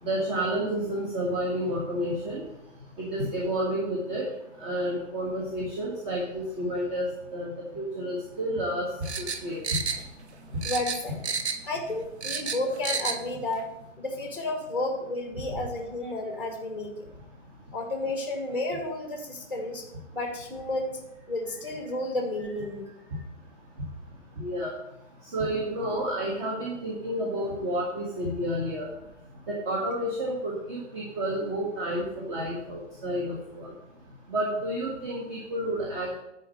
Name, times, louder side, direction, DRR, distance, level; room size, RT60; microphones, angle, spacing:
voice 1, 0.0-2.4 3.0-4.3 4.6-8.9 9.2-9.6 24.4-24.7 25.3-28.9 29.5-33.7 34.3-36.2, equal, 40° right, -2 dB, 1.8 m, -30 dB
sound 1, 9.0-10.3 10.6-11.7 12.0-13.2 13.5-13.6, right 6 dB, 60° right, 0.9 m, -31 dB
voice 2, 10.6-11.2 11.6-13.7 14.0-17.1 17.7-19.9 20.1-21.0 21.3-22.9, left 2 dB, 5° right, 3 dB, 0.8 m, -32 dB
10.0 x 4.4 x 6.5 m, 0.84 s
figure-of-eight pair, 120°, 37 cm